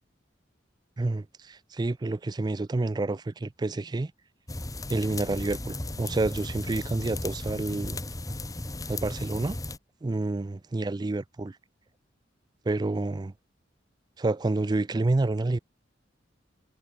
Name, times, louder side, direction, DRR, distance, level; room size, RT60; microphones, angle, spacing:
voice 1, 1.0-4.1 4.9-8.0 8.9-9.6 10.0-11.6 12.7-13.3 14.2-15.6, right 2 dB, 20° right, 0.4 m, -29 dB
sound 1, 4.5-9.8, left 2 dB, 20° left, 1.6 m, -35 dB
head